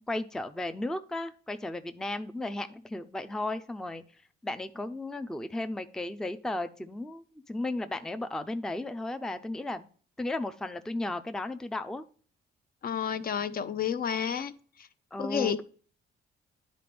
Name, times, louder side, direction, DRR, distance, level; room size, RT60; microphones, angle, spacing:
voice 1, 0.0-4.0 4.4-9.9 10.2-12.0 15.1-15.6, left 2 dB, 5° left, 10 dB, 0.4 m, -35 dB
voice 2, 12.8-14.5 15.2-15.6, left 8 dB, 50° left, 12 dB, 0.6 m, -30 dB
10.0 x 4.2 x 3.4 m, 0.43 s
cardioid pair, 90°, 20 cm